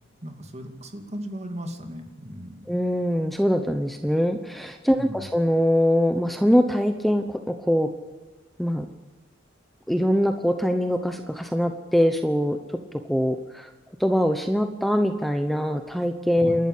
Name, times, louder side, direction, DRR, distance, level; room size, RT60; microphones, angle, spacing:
voice 1, 0.2-2.7 4.9-5.3 16.4-16.6, equal, 35° right, 5 dB, 2.6 m, -37 dB
voice 2, 2.7-7.9 8.6-8.9 9.9-12.6 13.1-13.7 14.0-16.7, equal, ahead, 6 dB, 0.9 m, -23 dB
28.5 x 12.5 x 8.5 m, 1.3 s
head